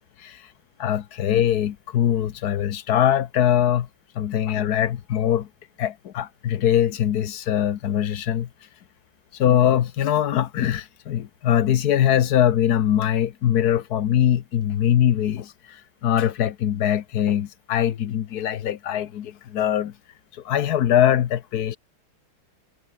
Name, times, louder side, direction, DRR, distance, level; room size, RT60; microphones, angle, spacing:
voice 1, 0.8-3.9 4.1-5.5 5.8-8.5 9.3-19.9 20.4-21.8, left 10 dB, 55° left, 1.3 m, -22 dB
omnidirectional pair, 2.3 m